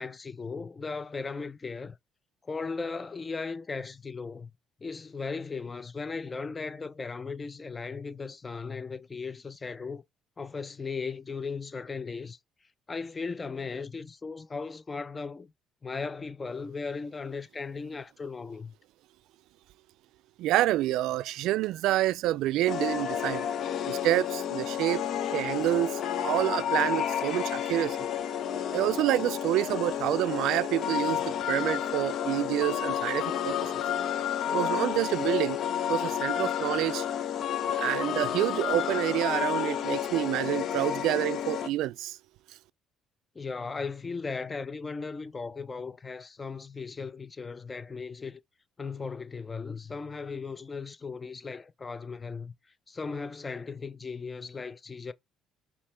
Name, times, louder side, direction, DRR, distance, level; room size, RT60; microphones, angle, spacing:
voice 1, 0.0-2.0 2.4-4.5 4.8-10.0 10.4-12.4 12.9-15.5 15.8-18.7 43.3-48.4 48.8-52.5 52.9-55.1, left 4 dB, 30° left, 0.6 m, -37 dB
voice 2, 20.4-23.5 23.9-25.0 25.3-28.0 28.7-33.7 34.5-35.6 35.9-37.1 37.8-42.2, right 15 dB, 80° right, 0.3 m, -28 dB
sound 1, 22.7-41.7, left 9 dB, 60° left, 0.7 m, -31 dB
5.4 x 3.0 x 3.2 m
supercardioid pair, 80°, 0 cm